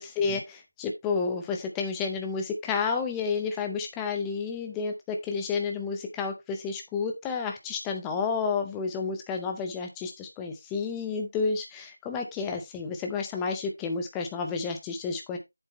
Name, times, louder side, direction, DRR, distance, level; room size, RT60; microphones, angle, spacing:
voice 1, 0.0-15.4, left 5 dB, 5° left, 4 dB, 0.6 m, -31 dB
8.0 x 7.4 x 3.0 m, 0.20 s
figure-of-eight pair, 170°, 0 cm